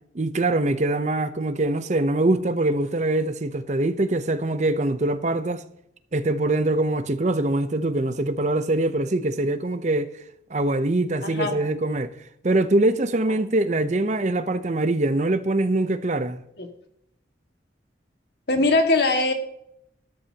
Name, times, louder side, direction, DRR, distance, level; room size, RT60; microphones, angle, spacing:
voice 1, 0.1-5.6 6.1-10.1 10.5-12.2 12.4-16.4, right 2 dB, 40° right, 0.7 m, -23 dB
voice 2, 11.2-11.6 16.6-16.7 18.5-19.3, left 2 dB, 55° left, 1.9 m, -21 dB
13.5 x 13.0 x 2.9 m
head